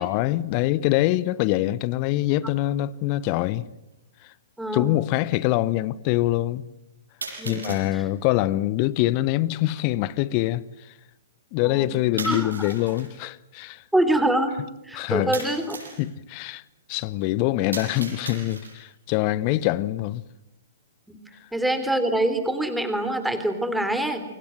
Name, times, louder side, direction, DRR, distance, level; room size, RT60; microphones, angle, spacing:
voice 1, 0.0-3.6 4.2-4.3 4.7-6.7 7.4-10.9 11.5-13.8 14.9-15.3 16.0-16.6 16.9-20.2, left 16 dB, 35° left, 0.9 m, -24 dB
sound 1, 2.8-2.9 3.9-4.0 7.2-7.9 12.2-13.1 15.3-16.0 17.7-18.9, right 3 dB, 75° right, 7.7 m, -37 dB
voice 2, 4.6-4.9 7.4-8.0 11.6-11.9 12.2-12.7 13.9-14.5 14.8-15.8 21.1-21.2 21.5-24.2, right 1 dB, 5° right, 3.5 m, -25 dB
29.0 x 24.5 x 7.8 m
figure-of-eight pair, 115°, 0 cm